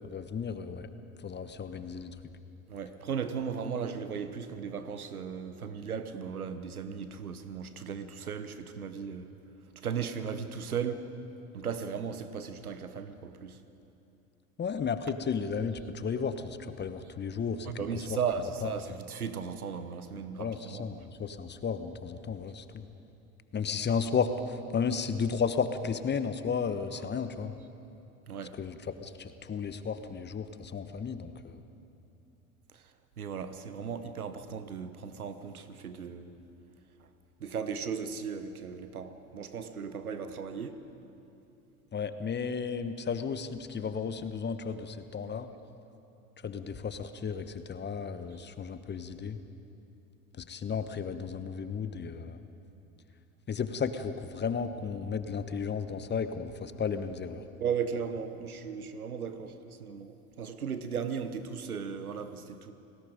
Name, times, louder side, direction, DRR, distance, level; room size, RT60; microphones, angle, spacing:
voice 1, 0.0-0.9 1.2-2.1 14.6-18.2 18.6-18.7 20.4-22.9 23.5-27.5 28.5-31.6 41.9-45.5 46.4-49.4 50.3-52.4 53.5-57.4, left 6 dB, 25° left, 1.2 m, -34 dB
voice 2, 2.7-9.4 9.8-11.0 11.5-13.6 17.7-20.8 28.3-28.6 33.2-36.4 37.4-40.8 57.6-62.7, right 6 dB, 90° right, 1.2 m, -36 dB
29.5 x 19.0 x 5.1 m
hypercardioid pair, 75°, 43 cm